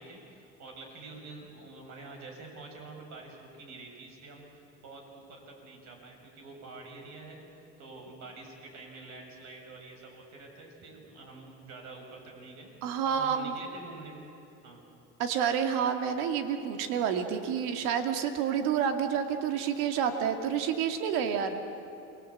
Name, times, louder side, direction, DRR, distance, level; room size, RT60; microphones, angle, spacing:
voice 1, 0.0-7.4 7.8-14.2 14.6-14.8, right 3 dB, 60° right, 2 dB, 7.3 m, -47 dB
voice 2, 12.8-13.5 15.2-21.7, right 8 dB, 75° right, 6 dB, 2.4 m, -29 dB
28.5 x 20.5 x 8.7 m, 2.9 s
supercardioid pair, 95°, 32 cm